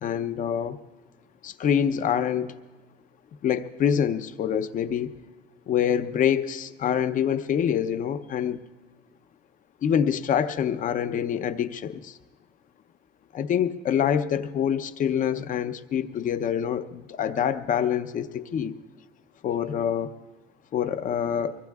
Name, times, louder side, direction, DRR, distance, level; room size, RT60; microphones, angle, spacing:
voice 1, 0.0-0.8 1.4-2.6 3.4-5.1 5.7-8.6 9.8-12.2 13.3-18.7 19.4-20.1 20.7-21.5, left 8 dB, 50° left, 11 dB, 0.7 m, -26 dB
23.5 x 21.0 x 2.4 m, 1.3 s
cardioid pair, 110°, 17 cm